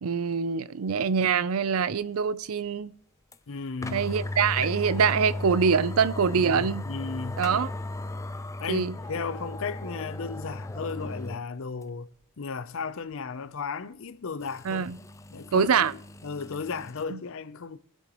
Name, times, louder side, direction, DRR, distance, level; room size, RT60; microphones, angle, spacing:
voice 1, 0.0-2.9 3.9-6.8 7.4-7.7 8.7-8.9 14.6-15.0 15.5-15.9 17.1-17.2, right 6 dB, 75° right, 0.5 m, -24 dB
sound 1, 3.3-3.4 3.8-11.4 11.8-11.9 14.4-17.0, left 2 dB, 15° left, 0.4 m, -36 dB
voice 2, 3.5-4.1 6.3-7.5 8.6-12.1 12.4-14.9 15.3-15.9 16.2-17.8, left 5 dB, 65° left, 0.6 m, -35 dB
22.0 x 7.8 x 3.0 m
head